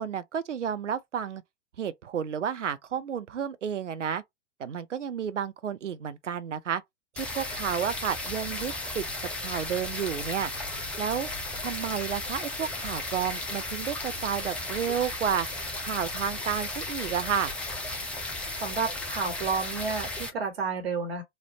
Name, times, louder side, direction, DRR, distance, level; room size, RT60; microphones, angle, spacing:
voice 1, 0.0-1.4 1.8-4.2 4.6-6.8 7.2-10.5 11.0-11.3 11.6-15.5 15.8-17.5, right 8 dB, 85° right, 0.5 m, -31 dB
sound 1, 7.2-20.3, left 2 dB, 5° left, 0.5 m, -35 dB
voice 2, 18.6-21.2, right 5 dB, 55° right, 1.4 m, -31 dB
3.2 x 2.5 x 2.9 m
figure-of-eight pair, 100°, 35 cm